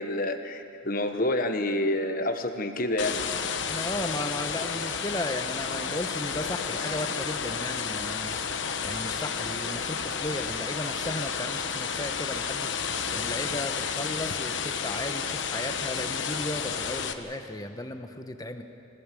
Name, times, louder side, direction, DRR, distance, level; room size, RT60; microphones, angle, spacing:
voice 1, 0.0-3.2, left 1 dB, 45° left, 7 dB, 1.3 m, -28 dB
sound 1, 3.0-17.1, left 6 dB, 60° left, 1.1 m, -31 dB
voice 2, 3.7-8.4 8.8-12.8 13.1-18.6, left 1 dB, 20° left, 7 dB, 1.1 m, -35 dB
26.0 x 18.0 x 7.7 m, 2.7 s
head